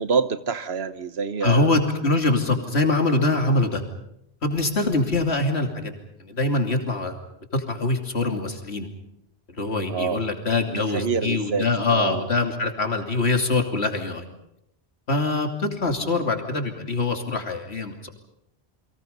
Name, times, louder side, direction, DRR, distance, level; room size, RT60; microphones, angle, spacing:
voice 1, 0.0-1.7 9.9-10.2 10.7-12.3 16.0-16.2, right 5 dB, 75° right, 12 dB, 1.4 m, -27 dB
voice 2, 1.4-3.8 4.4-5.9 6.2-7.2 7.5-8.9 9.6-14.2 15.1-18.1, left 2 dB, 90° left, 4 dB, 3.1 m, -24 dB
29.5 x 23.5 x 5.4 m, 0.77 s
omnidirectional pair, 1.1 m